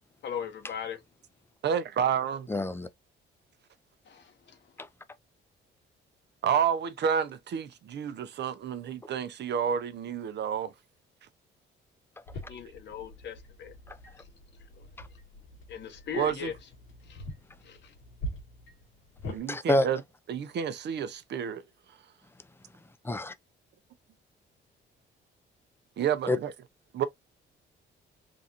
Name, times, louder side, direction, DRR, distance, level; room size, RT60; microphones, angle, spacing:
voice 1, 0.2-1.0 4.1-4.6 12.5-13.7 14.8-14.9 15.7-16.5 17.1-17.2 17.6-17.9, left 8 dB, 60° left, 1.0 m, -39 dB
voice 2, 1.6-2.5 6.4-10.7 16.1-16.5 19.3-20.0 20.3-21.6 26.0-26.5 26.9-27.1, right 8 dB, 60° right, 0.7 m, -30 dB
voice 3, 2.5-2.9 13.9-14.0 19.5-19.9 23.0-23.3 26.3-26.4, left 1 dB, 10° left, 0.5 m, -26 dB
sound 1, 12.3-19.4, left 1 dB, 90° left, 1.8 m, -44 dB
3.8 x 2.5 x 2.8 m
cardioid pair, 90°, 20 cm